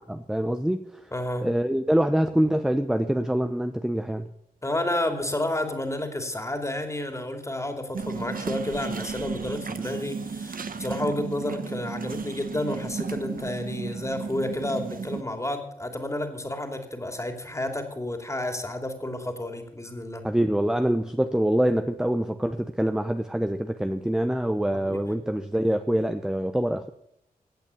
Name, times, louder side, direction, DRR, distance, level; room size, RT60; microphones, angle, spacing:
voice 1, 0.1-0.9 1.4-4.3 20.2-26.9, right 1 dB, 5° right, 7 dB, 0.8 m, -25 dB
voice 2, 1.1-1.5 4.6-20.2 24.7-25.0, left 1 dB, 20° left, 5 dB, 2.8 m, -31 dB
sound 1, 7.9-15.2, right 5 dB, 65° right, 1.1 m, -34 dB
16.0 x 8.4 x 7.1 m, 0.73 s
cardioid pair, 65°, 15 cm